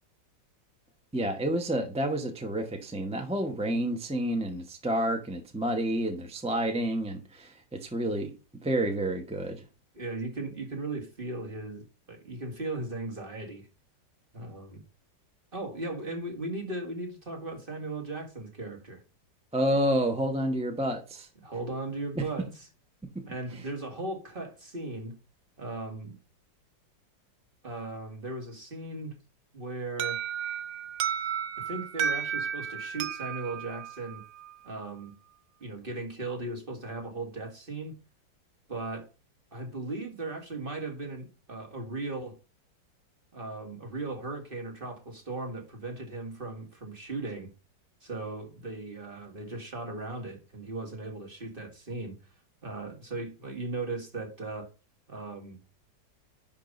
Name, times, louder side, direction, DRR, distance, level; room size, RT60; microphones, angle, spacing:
voice 1, 1.1-7.5 7.8-8.3 8.6-9.6 19.5-21.3 22.2-22.3, right 1 dB, 5° right, 0.7 m, -29 dB
voice 2, 9.9-13.7 14.3-14.8 15.5-19.0 21.4-22.7 23.3-25.2 25.6-26.2 27.6-29.2 29.5-30.2 31.6-34.2 34.6-35.1 35.6-37.9 38.7-39.1 39.5-42.4 43.3-47.5 48.0-52.1 52.6-54.7 55.1-55.6, right 2 dB, 30° right, 1.9 m, -37 dB
Alarm, 30.0-34.8, right 8 dB, 80° right, 1.4 m, -33 dB
10.5 x 3.7 x 5.3 m
omnidirectional pair, 2.0 m